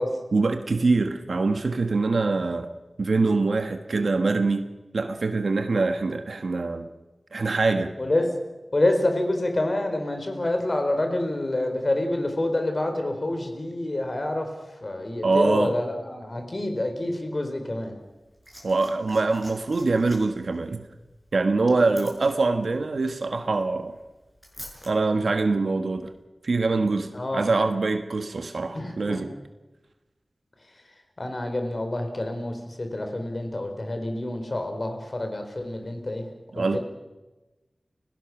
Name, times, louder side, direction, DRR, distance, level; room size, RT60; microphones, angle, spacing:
voice 1, 0.3-2.7 3.0-4.7 4.9-6.9 7.3-7.9 15.2-15.7 18.6-20.8 21.3-24.0 24.9-26.1 26.4-29.3 36.5-36.8, right 3 dB, 80° right, 7 dB, 1.2 m, -24 dB
voice 2, 8.0-8.3 8.7-14.5 14.8-17.9 21.7-22.0 27.1-27.5 28.7-29.2 31.2-36.3 36.6-36.8, left 1 dB, 45° left, 5 dB, 4.1 m, -27 dB
Liquid, 18.0-24.9 26.0-26.1, equal, 15° left, 7.5 m, -48 dB
30.0 x 17.0 x 6.0 m, 1.1 s
wide cardioid pair, 70°, 0 cm